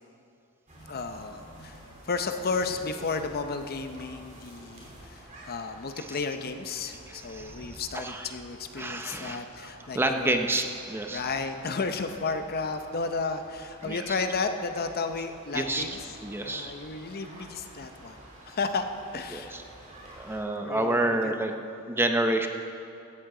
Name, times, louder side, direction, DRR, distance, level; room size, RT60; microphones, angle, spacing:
sound 1, 0.7-20.4, right 1 dB, 35° right, 3.1 m, -49 dB
voice 1, 0.9-10.3 11.1-16.0 16.4-18.2 18.5-18.9 19.1-19.6 20.3-21.4, left 4 dB, 45° left, 7 dB, 0.7 m, -33 dB
voice 2, 7.1-8.3 8.8-9.7 9.9-11.2 13.8-14.0 15.5-15.8 16.2-16.7 19.3-19.6 20.1-21.5 21.9-22.5, right 1 dB, 10° right, 5 dB, 0.6 m, -29 dB
16.0 x 12.5 x 3.8 m, 2.5 s
head